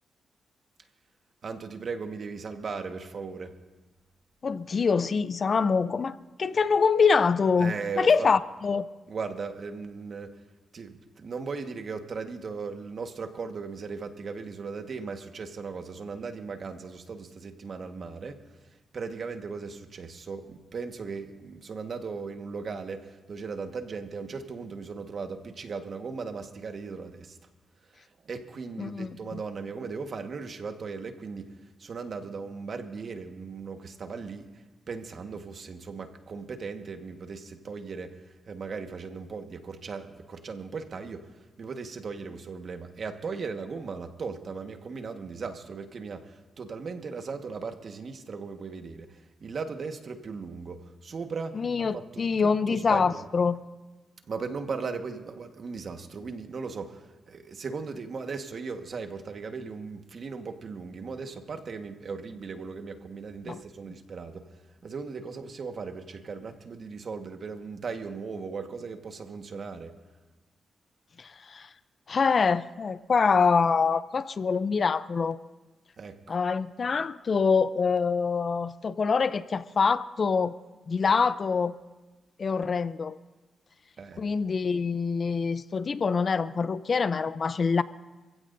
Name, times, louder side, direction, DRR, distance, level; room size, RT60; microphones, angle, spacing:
voice 1, 1.4-3.5 7.6-8.3 9.1-10.3 10.7-18.4 18.9-27.4 27.9-31.4 31.8-38.1 38.5-41.2 41.6-51.6 51.9-53.2 54.3-64.4 64.8-69.9 76.0-76.4 84.0-84.2, right 5 dB, 55° right, 1.4 m, -37 dB
voice 2, 4.4-8.9 28.8-29.4 51.5-53.6 63.5-63.6 71.2-71.7 72.1-75.4 76.3-80.5 80.9-81.7 82.4-83.2 84.2-87.8, left 5 dB, 50° left, 0.5 m, -25 dB
27.0 x 16.0 x 2.7 m
cardioid pair, 75°, 0 cm